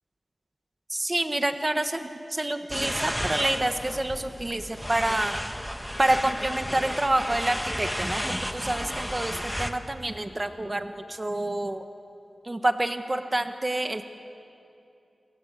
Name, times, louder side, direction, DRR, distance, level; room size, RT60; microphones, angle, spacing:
voice 1, 0.9-5.4 6.0-11.8 12.4-14.0, right 1 dB, 25° right, 7 dB, 1.3 m, -28 dB
sound 1, 2.7-9.7, equal, ahead, 1.5 m, -32 dB
28.0 x 24.0 x 8.2 m, 2.6 s
wide cardioid pair, 95°, 0 cm